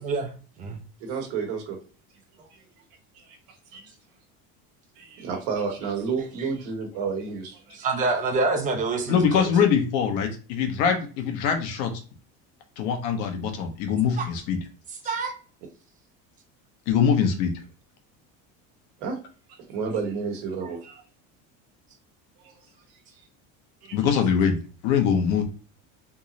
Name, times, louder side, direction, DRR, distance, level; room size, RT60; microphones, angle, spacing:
voice 1, 0.0-0.3 0.6-0.8 6.4-6.5 7.7-9.5 14.2-14.3 15.0-15.3, right 3 dB, 25° right, 4 dB, 0.7 m, -26 dB
voice 2, 1.0-1.8 2.5-2.6 3.3-3.4 3.7-3.9 5.0-7.8 19.0-19.2 19.5-21.0 22.4-22.5 23.8-24.0, right 5 dB, 90° right, 2 dB, 1.4 m, -31 dB
voice 3, 9.1-11.9 12.8-14.6 16.9-17.5 23.9-24.6 24.8-25.4, left 7 dB, 80° left, 4 dB, 1.1 m, -23 dB
3.7 x 3.0 x 2.6 m, 0.37 s
cardioid pair, 170°, 34 cm